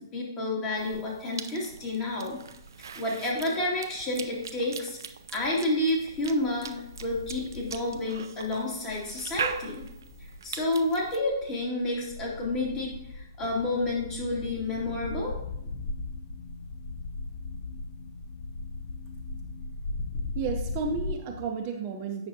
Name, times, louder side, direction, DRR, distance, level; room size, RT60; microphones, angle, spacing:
voice 1, 0.1-2.4 3.0-5.0 5.3-9.8 10.2-15.3, left 2 dB, 25° left, -3 dB, 2.4 m, -30 dB
Cough / Chewing mastication, 0.8-11.2, right 6 dB, 70° right, 0.5 m, -41 dB
sound 1, 2.3-2.9 3.3-4.7 5.1-21.2, left 2 dB, 40° left, 0.9 m, -40 dB
sound 2, 13.4-21.5, left 6 dB, 70° left, 0.5 m, -44 dB
voice 2, 20.3-22.3, right 5 dB, 35° right, 3 dB, 0.7 m, -32 dB
8.2 x 5.8 x 2.8 m, 0.85 s
hypercardioid pair, 135°, 2 cm